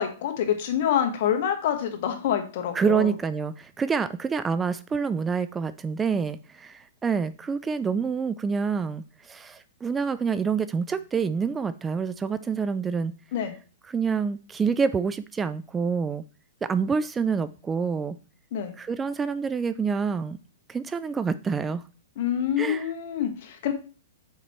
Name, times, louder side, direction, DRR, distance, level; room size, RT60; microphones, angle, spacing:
voice 1, 0.0-3.1 13.3-13.5 18.5-18.7 22.2-23.7, left 9 dB, 55° left, 5 dB, 1.5 m, -26 dB
voice 2, 2.7-13.1 13.9-16.2 16.6-18.2 18.8-20.4 20.7-21.8 22.6-22.9, right 5 dB, 15° right, 14 dB, 0.3 m, -27 dB
6.6 x 4.5 x 4.3 m, 0.36 s
hypercardioid pair, 135°, 0 cm